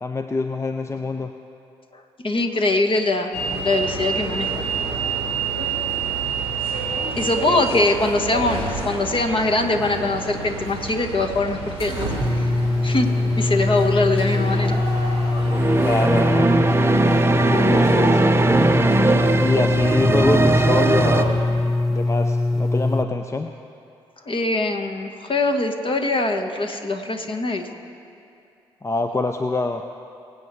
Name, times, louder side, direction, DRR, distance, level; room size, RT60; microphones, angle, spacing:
voice 1, 0.0-1.3 7.5-7.8 15.6-16.5 17.3-18.3 19.4-21.5 21.9-23.5 28.8-29.8, left 2 dB, 20° left, 6 dB, 0.6 m, -25 dB
voice 2, 1.9-4.5 4.9-5.0 7.2-12.5 12.8-13.1 13.4-15.2 24.2-27.7, left 2 dB, 40° left, 4 dB, 1.4 m, -23 dB
sound 1, 3.3-21.4, right 3 dB, 90° left, 2.5 m, -29 dB
sound 2, 12.2-23.0, left 2 dB, ahead, 1.0 m, -22 dB
sound 3, 15.4-21.2, right 2 dB, 20° right, 0.7 m, -19 dB
23.5 x 8.4 x 3.3 m, 2.6 s
hypercardioid pair, 40°, 13 cm